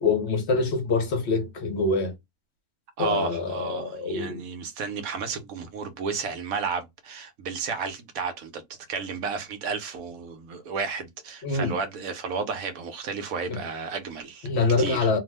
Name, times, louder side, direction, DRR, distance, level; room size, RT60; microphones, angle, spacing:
voice 1, 0.0-2.1 3.0-4.4 11.4-11.8 13.5-13.6 14.4-15.2, left 3 dB, 55° left, 0.9 m, -25 dB
voice 2, 3.0-8.6 8.9-14.5 14.8-15.1, right 5 dB, 75° right, 1.1 m, -32 dB
2.9 x 2.0 x 3.3 m
omnidirectional pair, 1.6 m